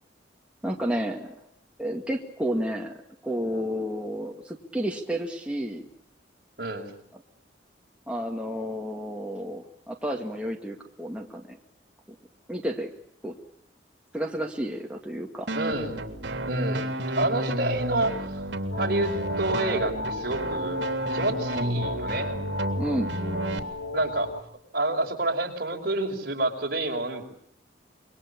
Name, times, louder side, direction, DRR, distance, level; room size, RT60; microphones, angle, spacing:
voice 1, 0.6-1.4 1.8-2.9 3.2-5.8 8.1-11.6 12.5-12.9 13.2-13.4 14.1-15.5 22.8-23.1, equal, 5° right, 0 dB, 2.1 m, -31 dB
voice 2, 6.6-6.9 15.5-16.0 16.5-18.4 18.7-19.1 19.4-20.8 21.1-22.3 23.9-24.3 24.7-27.2, right 2 dB, 55° right, 2 dB, 5.5 m, -28 dB
sound 1, 15.5-23.6, right 1 dB, 70° right, 3.2 m, -31 dB
sound 2, 18.7-24.4, left 2 dB, 65° left, 3.3 m, -34 dB
27.0 x 23.5 x 8.5 m, 0.70 s
head